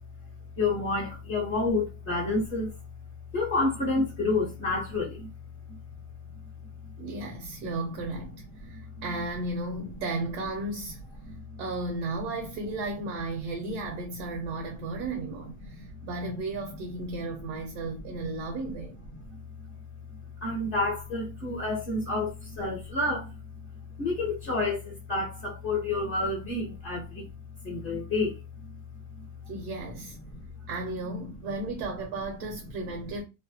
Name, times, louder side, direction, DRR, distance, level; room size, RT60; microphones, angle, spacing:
voice 1, 0.6-2.7 3.3-5.3 5.7-5.8 8.7-9.0 11.2-11.6 17.5-17.6 19.3-19.4 20.4-23.4 24.0-27.3 27.6-28.7 29.1-29.3 30.3-30.4, left 2 dB, 40° left, 0.8 m, -29 dB
voice 2, 7.0-11.0 11.6-19.0 29.5-30.2 30.7-33.2, right 2 dB, 70° right, 1.1 m, -34 dB
3.0 x 2.1 x 2.7 m
omnidirectional pair, 1.8 m